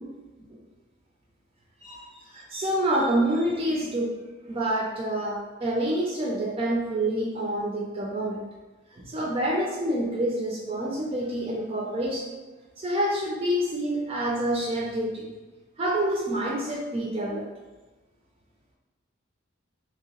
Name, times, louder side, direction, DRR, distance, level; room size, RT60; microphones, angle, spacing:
voice 1, 1.8-4.2 4.5-8.4 8.9-12.3 12.8-15.3 15.8-17.5, right 1 dB, 30° right, -3 dB, 0.4 m, -27 dB
3.0 x 2.8 x 2.9 m, 1.2 s
head